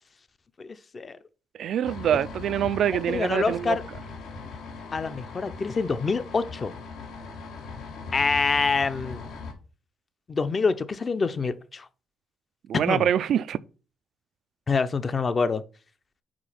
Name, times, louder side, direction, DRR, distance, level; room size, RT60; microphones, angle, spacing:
voice 1, 0.6-1.2 3.1-3.8 4.9-6.7 8.1-9.3 10.3-11.9 12.7-13.1 14.7-15.6, left 4 dB, 35° left, 0.6 m, -26 dB
voice 2, 1.6-3.8 12.7-13.6, right 9 dB, 70° right, 0.3 m, -25 dB
sound 1, 1.8-9.5, left 4 dB, 80° left, 1.1 m, -40 dB
5.1 x 4.1 x 5.6 m
cardioid pair, 90°, 0 cm